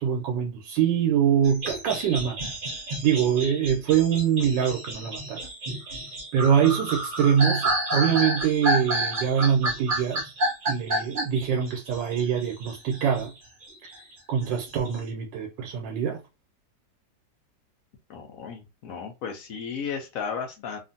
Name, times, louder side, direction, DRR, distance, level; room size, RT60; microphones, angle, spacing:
voice 1, 0.0-2.4 3.0-5.5 6.3-10.3 10.7-13.3 14.3-16.2, right 8 dB, 85° right, 1.3 m, -24 dB
sound 1, 1.4-13.3 13.6-15.0, right 1 dB, 65° right, 0.5 m, -30 dB
voice 2, 18.1-20.8, left 6 dB, 65° left, 0.9 m, -34 dB
2.9 x 2.5 x 2.5 m
omnidirectional pair, 2.0 m